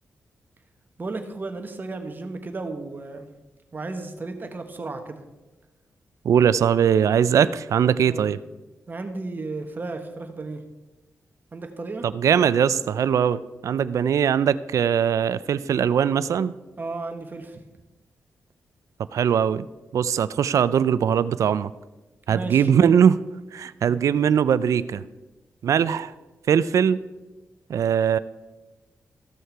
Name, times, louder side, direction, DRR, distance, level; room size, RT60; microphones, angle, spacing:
voice 1, 1.0-3.3 3.7-5.2 8.0-8.3 8.9-10.6 11.5-12.1 16.8-17.6 22.3-22.7, right 3 dB, 35° right, 6 dB, 1.2 m, -34 dB
voice 2, 6.2-8.4 12.0-16.5 19.1-19.7 19.9-21.7 22.3-23.2 23.5-25.0 25.6-26.1 26.5-27.0 27.7-28.2, right 8 dB, 70° right, 16 dB, 0.4 m, -21 dB
14.5 x 6.5 x 4.6 m, 1.1 s
cardioid pair, 105°, 6 cm